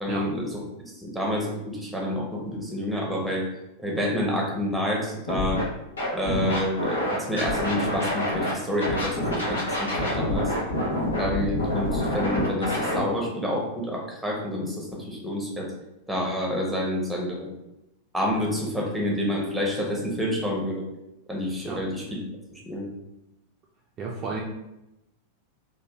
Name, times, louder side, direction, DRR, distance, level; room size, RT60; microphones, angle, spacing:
voice 1, 0.0-0.5 1.0-3.5 3.8-5.6 6.1-10.5 11.2-15.7 16.1-17.5 18.1-20.8 21.3-22.2 22.5-22.9, equal, ahead, -2 dB, 0.8 m, -28 dB
Scratching (performance technique), 5.3-5.6 6.0-8.5 8.8-13.0, left 1 dB, 70° left, 0.9 m, -27 dB
voice 2, 24.0-24.4, right 3 dB, 30° right, -3 dB, 0.4 m, -31 dB
3.1 x 2.0 x 3.0 m, 0.89 s
figure-of-eight pair, 90°, 0 cm